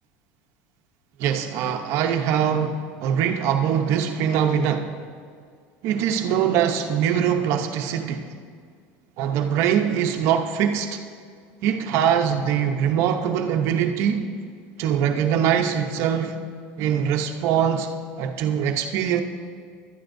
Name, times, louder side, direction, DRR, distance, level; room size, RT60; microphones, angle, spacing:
voice 1, 1.2-5.0 5.8-8.3 9.2-11.0 11.6-14.3 14.8-16.4 16.8-17.9 18.2-19.2, right 8 dB, 60° right, 5 dB, 0.8 m, -22 dB
18.5 x 12.0 x 2.6 m, 2.1 s
supercardioid pair, 125°, 5 cm